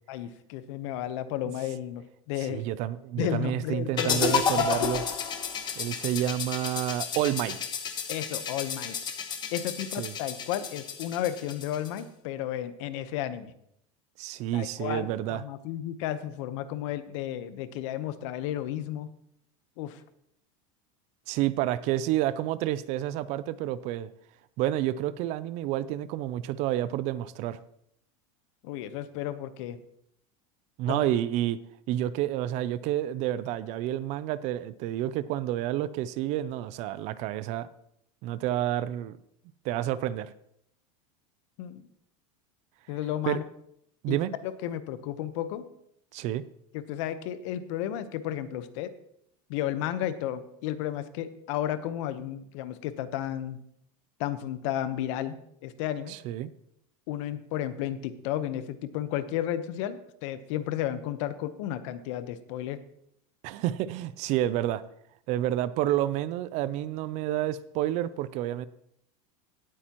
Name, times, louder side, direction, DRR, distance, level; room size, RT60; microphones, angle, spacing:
voice 1, 0.1-2.6 3.2-5.0 8.1-8.9 9.5-13.5 14.5-19.1 19.8-20.0 28.6-29.8 30.9-31.0 41.6-41.8 42.9-43.4 44.1-44.2 44.4-45.6 46.7-48.9 49.5-53.6 54.2-55.4 55.6-56.1 57.1-62.8, left 11 dB, 60° left, 11 dB, 1.0 m, -33 dB
voice 2, 2.4-5.0 5.8-7.6 10.0-10.1 14.2-15.4 21.3-24.1 24.6-27.6 30.8-31.6 31.9-37.7 38.2-39.2 39.6-40.3 43.2-43.4 44.0-44.3 46.1-46.4 56.1-56.5 63.4-64.8 65.3-68.7, right 13 dB, 40° right, 17 dB, 0.4 m, -29 dB
sound 1, 4.0-12.0, left 6 dB, 25° left, 1.2 m, -31 dB
17.5 x 8.6 x 3.0 m, 0.73 s
supercardioid pair, 155°, 18 cm